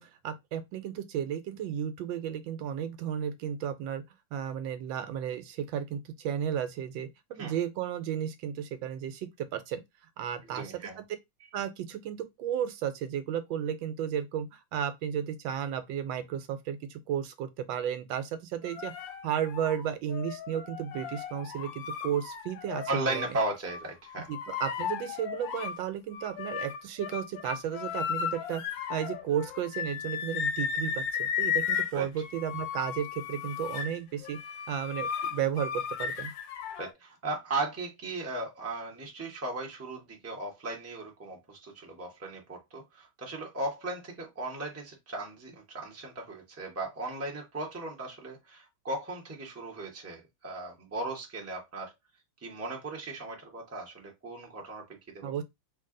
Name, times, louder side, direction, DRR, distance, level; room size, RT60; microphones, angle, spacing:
voice 1, 0.0-4.0 4.3-9.8 10.2-10.8 11.5-23.3 24.3-34.4 34.7-36.3 55.2-55.4, right 9 dB, 80° right, 1.3 m, -33 dB
voice 2, 10.4-11.0 22.9-24.3 31.9-32.1 36.8-51.9 52.4-55.4, right 2 dB, 10° right, 0.6 m, -37 dB
sound 1, 18.6-23.3 23.7-25.8 26.1-36.9, left 7 dB, 80° left, 1.3 m, -35 dB
3.3 x 2.6 x 3.7 m
omnidirectional pair, 2.1 m